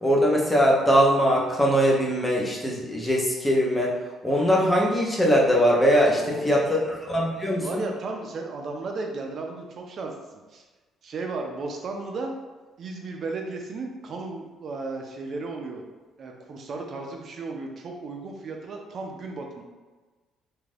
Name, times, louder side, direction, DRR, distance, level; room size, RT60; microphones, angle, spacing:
voice 1, 0.0-3.9 4.2-7.8, equal, 10° left, -2 dB, 0.6 m, -21 dB
voice 2, 6.0-6.8 7.6-10.7 11.0-12.3 12.8-15.8 16.2-19.6, right 3 dB, 40° right, 2 dB, 0.4 m, -34 dB
2.6 x 2.4 x 3.3 m, 1.3 s
cardioid pair, 150°, 0 cm